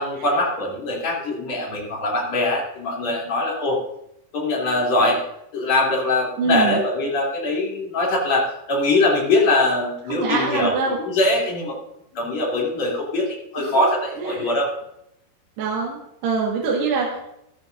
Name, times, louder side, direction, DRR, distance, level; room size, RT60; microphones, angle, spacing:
voice 1, 0.0-3.8 4.3-5.2 5.5-11.8 12.1-13.3 13.5-14.7, left 2 dB, 40° left, -4 dB, 4.2 m, -22 dB
voice 2, 6.4-6.8 10.1-11.0 13.6-13.8 14.2-14.5 15.6-17.2, right 4 dB, 70° right, -3 dB, 3.6 m, -24 dB
14.5 x 13.0 x 2.7 m, 0.78 s
omnidirectional pair, 5.2 m